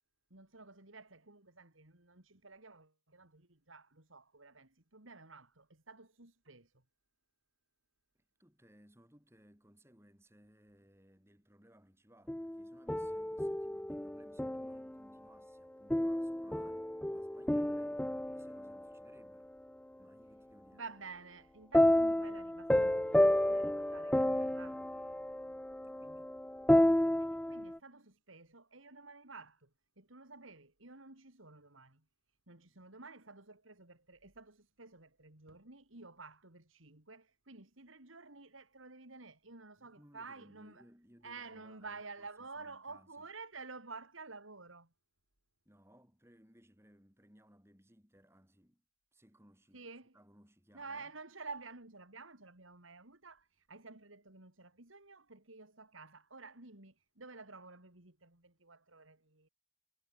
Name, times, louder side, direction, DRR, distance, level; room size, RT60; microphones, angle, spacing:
voice 1, 0.3-6.7 20.7-24.8 27.2-29.7 30.0-32.0 32.5-40.8 41.2-44.9 49.7-50.2 50.7-59.5, right 4 dB, 90° right, 4.0 m, -51 dB
voice 2, 8.4-19.5 20.0-20.8 25.8-26.4 32.6-32.8 39.8-42.3 42.6-43.3 45.7-48.8 49.1-49.9 50.1-51.1, equal, 15° right, 7.1 m, -63 dB
sound 1, 12.3-15.0 15.9-19.3 21.7-27.8, left 1 dB, 5° left, 0.3 m, -31 dB
head